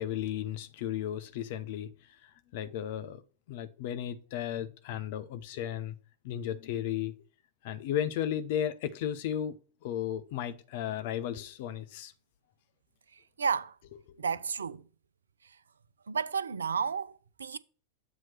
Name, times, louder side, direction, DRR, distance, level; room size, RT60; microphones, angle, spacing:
voice 1, 0.0-1.9 2.2-3.2 3.5-6.0 6.2-7.1 7.6-9.6 9.8-12.1, left 10 dB, 50° left, 0.6 m, -34 dB
voice 2, 13.1-13.8 14.2-14.8 16.1-17.6, right 6 dB, 70° right, 0.4 m, -32 dB
8.1 x 3.0 x 5.7 m
figure-of-eight pair, 90°, 0 cm